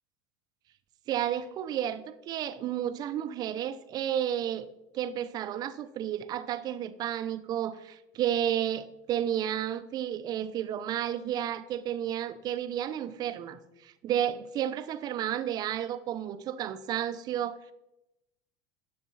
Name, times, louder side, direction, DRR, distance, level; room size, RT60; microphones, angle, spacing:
voice 1, 1.1-4.7 4.9-17.6, right 10 dB, 45° right, 0.6 m, -32 dB
11.0 x 6.7 x 4.1 m
supercardioid pair, 110°, 10 cm